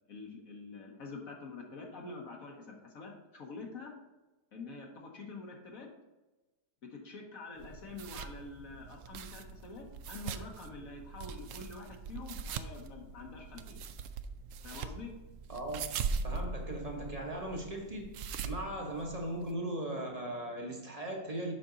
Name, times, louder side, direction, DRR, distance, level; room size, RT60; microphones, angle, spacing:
voice 1, 0.1-3.9 4.5-5.9 6.9-13.8 14.6-15.1, left 3 dB, 60° left, 0 dB, 1.5 m, -46 dB
sound 1, 7.6-19.5, right 5 dB, 70° right, 0.8 m, -41 dB
voice 2, 15.5-16.0 16.2-18.1 18.4-21.5, right 1 dB, 25° right, 1 dB, 1.0 m, -38 dB
7.6 x 6.0 x 3.9 m, 1.1 s
omnidirectional pair, 1.7 m